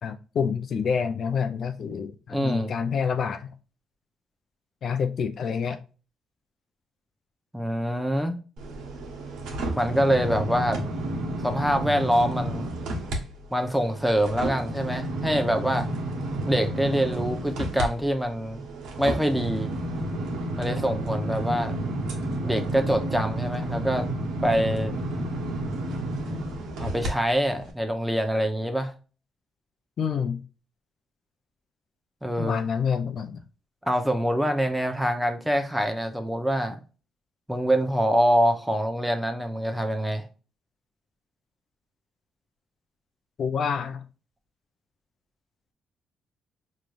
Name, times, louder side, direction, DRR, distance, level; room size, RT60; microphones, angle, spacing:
voice 1, 0.0-3.5 4.8-5.8 30.0-30.4 32.4-33.4 43.4-44.0, left 6 dB, 60° left, 0.5 m, -27 dB
voice 2, 2.3-2.7 7.5-8.4 9.7-10.8 11.4-12.7 13.5-15.9 16.5-18.6 19.0-19.7 20.6-21.8 22.4-24.1 24.4-24.9 26.8-28.9 32.2-32.6 33.9-36.8 37.5-40.2, equal, 5° right, 0.9 m, -25 dB
sound 1, 8.6-13.2 13.6-27.1 27.6-27.7, right 1 dB, 85° right, 1.3 m, -31 dB
5.1 x 3.2 x 2.5 m
cardioid pair, 90°, 0 cm